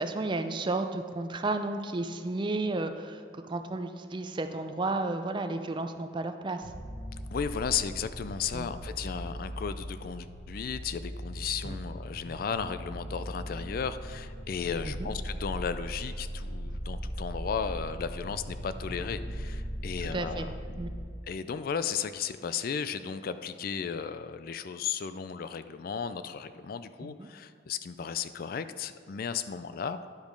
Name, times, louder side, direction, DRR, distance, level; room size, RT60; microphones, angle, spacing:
voice 1, 0.0-6.6 8.5-8.6 11.6-11.8 14.8-15.1 20.0-20.5 20.8-20.9 27.0-27.3, right 2 dB, 25° right, 8 dB, 0.4 m, -33 dB
sound 1, 6.6-21.0, equal, 75° left, 2.4 m, -39 dB
voice 2, 7.3-20.9 21.3-30.0, left 6 dB, 50° left, 12 dB, 0.3 m, -35 dB
10.5 x 5.1 x 5.2 m, 2.3 s
head